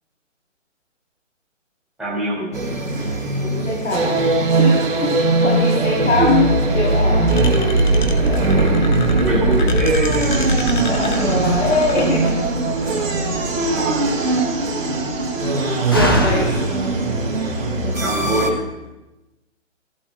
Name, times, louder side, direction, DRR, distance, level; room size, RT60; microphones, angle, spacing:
voice 1, 2.0-2.5 6.2-6.5 9.1-10.5 13.7-14.4 14.9-15.1 18.0-18.7, right 1 dB, ahead, -7 dB, 2.1 m, -24 dB
sound 1, 2.5-18.5, right 2 dB, 90° right, 2.1 m, -19 dB
voice 2, 3.4-4.2 4.5-6.5 6.7-7.4 8.2-8.9 10.8-12.4 15.8-16.6, left 3 dB, 80° left, -3 dB, 3.4 m, -23 dB
sound 2, 7.3-12.3, left 5 dB, 40° left, 0.8 m, -32 dB
Slam, 11.0-18.1, equal, 20° left, 0.5 m, -28 dB
14.5 x 11.5 x 2.2 m, 1.0 s
hypercardioid pair, 160°, 38 cm